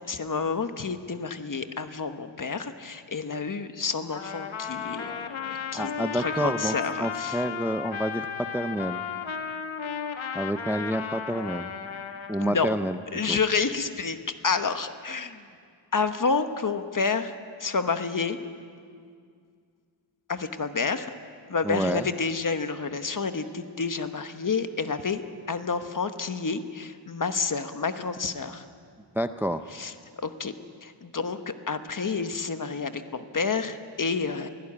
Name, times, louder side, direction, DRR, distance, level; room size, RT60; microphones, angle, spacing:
voice 1, 0.1-7.4 12.4-12.7 13.1-14.2 14.4-15.4 15.9-18.4 20.3-21.1 21.5-25.2 25.5-28.6 29.7-30.5 30.8-34.5, left 5 dB, 40° left, 9 dB, 1.1 m, -29 dB
Trumpet, 4.1-12.5, left 6 dB, 75° left, 1.3 m, -34 dB
voice 2, 5.7-6.7 7.0-9.0 10.3-11.7 12.3-13.0 13.3-13.4 21.6-22.1 29.1-29.6, equal, 5° right, 10 dB, 0.5 m, -28 dB
23.5 x 16.0 x 8.6 m, 2.2 s
wide cardioid pair, 125°, 47 cm